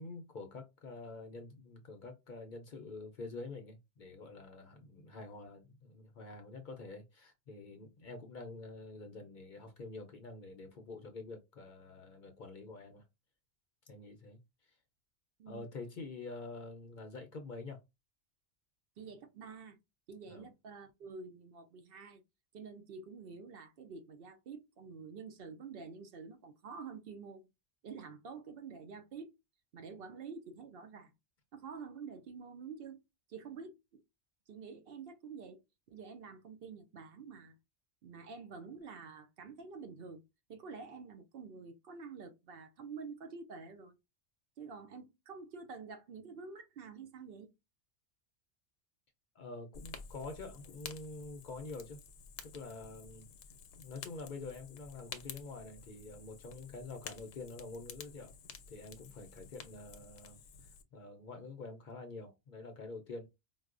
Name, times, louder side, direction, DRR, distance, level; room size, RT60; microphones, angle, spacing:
voice 1, 0.0-13.0 13.9-14.8 15.5-17.8 20.3-20.5 49.3-52.0 52.4-53.3 53.8-58.3 58.7-60.4 60.9-63.3, left 3 dB, 55° left, 0.6 m, -47 dB
voice 2, 19.0-19.8 20.1-22.2 22.5-27.5 27.8-29.3 29.7-31.1 31.5-33.0 33.3-34.0 34.5-35.6 35.9-37.6 38.0-40.2 40.5-43.9 44.6-47.5, right 5 dB, 65° right, 0.7 m, -48 dB
Fire, 49.7-60.8, left 6 dB, 85° left, 0.9 m, -51 dB
4.6 x 2.1 x 2.4 m
omnidirectional pair, 1.1 m